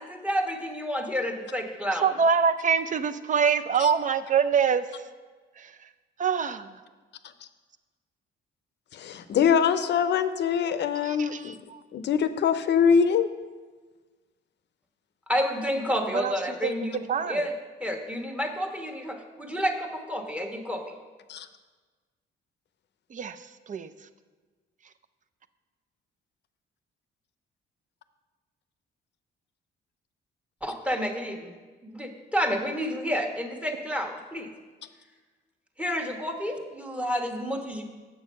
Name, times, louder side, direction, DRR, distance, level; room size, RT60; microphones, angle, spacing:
voice 1, 0.0-2.1 15.3-17.5 17.8-20.8 30.6-31.5 31.8-34.5 35.8-37.8, equal, 5° right, 3 dB, 1.1 m, -30 dB
voice 2, 2.0-4.8 5.6-5.7 6.2-6.7 11.0-11.8 16.1-16.3 16.6-16.7 17.1-17.5 23.1-23.4 23.7-23.9, right 6 dB, 40° right, 12 dB, 0.5 m, -25 dB
voice 3, 8.9-11.5 11.9-13.3 21.3-21.5, left 7 dB, 60° left, 11 dB, 0.6 m, -23 dB
7.5 x 6.9 x 5.4 m, 1.4 s
cardioid pair, 90°, 20 cm